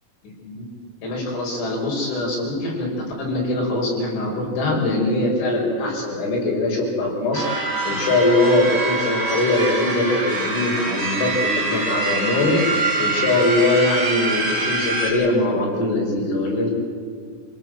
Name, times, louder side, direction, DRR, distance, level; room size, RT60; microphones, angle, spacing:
voice 1, 1.0-16.8, left 2 dB, 80° left, -2 dB, 8.0 m, -22 dB
sound 1, 7.3-15.1, right 2 dB, 15° right, 7.1 m, -24 dB
27.0 x 18.0 x 7.9 m, 2.1 s
omnidirectional pair, 5.4 m